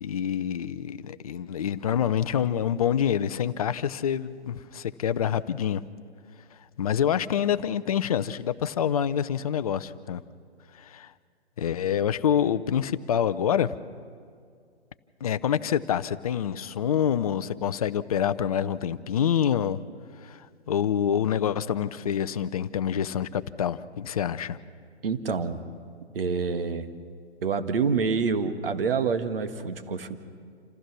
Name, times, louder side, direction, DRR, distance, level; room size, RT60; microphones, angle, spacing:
voice 1, 0.0-5.8 6.8-10.2 10.8-11.1 11.6-13.7 15.2-19.8 20.2-24.6, left 9 dB, 35° left, 13 dB, 0.6 m, -26 dB
voice 2, 25.0-25.6 26.1-26.9 27.4-30.2, right 5 dB, 55° right, 9 dB, 1.5 m, -27 dB
27.5 x 15.0 x 6.1 m, 2.2 s
figure-of-eight pair, 130°, 33 cm